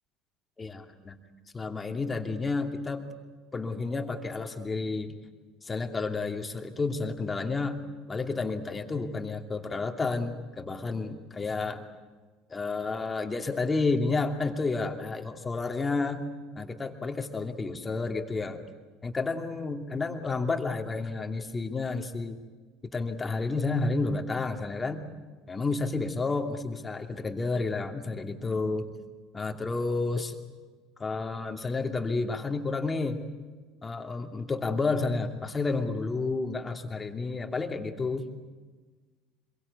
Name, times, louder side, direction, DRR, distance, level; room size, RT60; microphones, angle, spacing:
voice 1, 0.6-1.2 1.5-3.1 3.5-5.2 5.6-7.8 8.1-11.8 12.5-16.3 16.6-18.6 19.0-22.4 22.9-25.0 25.5-28.9 29.3-30.3 31.0-33.2 33.8-38.3, left 3 dB, 20° left, 5 dB, 2.7 m, -31 dB
26.0 x 23.0 x 8.4 m, 1.4 s
figure-of-eight pair, 65°, 0 cm